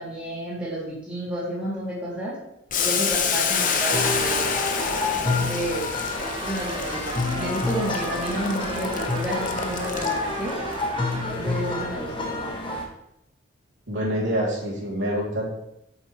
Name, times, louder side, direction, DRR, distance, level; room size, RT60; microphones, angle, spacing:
voice 1, 0.0-2.4 2.8-4.5 5.1-5.9 6.4-10.6 11.1-12.4, right 1 dB, 5° right, -8 dB, 2.7 m, -31 dB
Boiling, 2.7-10.5, left 6 dB, 45° left, 0.7 m, -28 dB
sound 1, 3.5-5.6 5.9-11.3, right 3 dB, 25° right, 0.8 m, -36 dB
sound 2, 3.9-12.9, left 2 dB, 25° left, 1.1 m, -29 dB
voice 2, 13.9-15.4, equal, 70° right, -5 dB, 2.9 m, -26 dB
8.2 x 6.7 x 3.2 m, 0.81 s
head